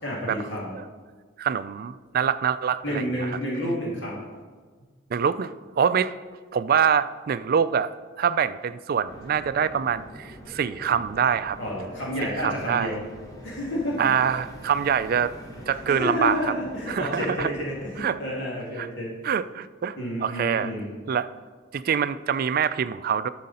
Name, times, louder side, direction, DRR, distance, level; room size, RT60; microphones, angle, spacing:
voice 1, 0.0-0.7 2.8-4.2 11.6-13.0 13.4-14.1 15.9-19.1 20.0-20.9, equal, 60° left, -4 dB, 2.5 m, -30 dB
voice 2, 1.4-3.3 5.1-6.2 6.5-11.6 12.2-12.9 14.0-15.3 15.7-16.4 16.9-17.5 18.0-18.2 18.8-18.9 19.2-20.7 21.1-21.3 21.7-23.3, right 7 dB, 45° right, 14 dB, 0.3 m, -25 dB
sound 1, 9.0-18.1, equal, 20° left, 1.4 m, -44 dB
11.5 x 6.4 x 4.2 m, 1.5 s
head